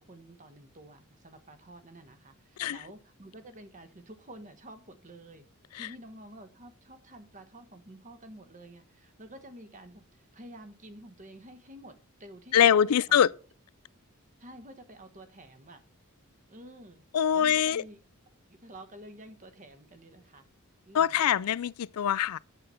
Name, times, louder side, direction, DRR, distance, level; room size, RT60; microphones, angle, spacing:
voice 1, 0.0-5.4 5.8-13.2 14.4-15.8 16.5-17.0 17.3-18.0 18.5-20.5 20.8-21.2, right 1 dB, 35° right, 1.2 m, -50 dB
voice 2, 12.5-13.3 17.1-17.8 20.9-22.4, left 9 dB, 80° left, 0.4 m, -23 dB
8.9 x 7.7 x 5.6 m
head